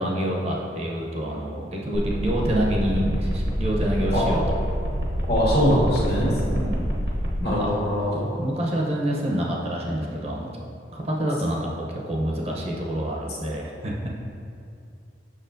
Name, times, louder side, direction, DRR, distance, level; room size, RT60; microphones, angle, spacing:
voice 1, 0.0-4.4 6.5-6.9 7.4-7.7 8.4-10.5 10.9-14.1, equal, 35° right, -2 dB, 0.6 m, -27 dB
sound 1, 1.9-7.4, equal, 70° right, 0.9 m, -26 dB
voice 2, 5.3-6.3 7.4-8.3, equal, 55° left, -6 dB, 1.5 m, -22 dB
6.7 x 5.8 x 2.6 m, 2.5 s
head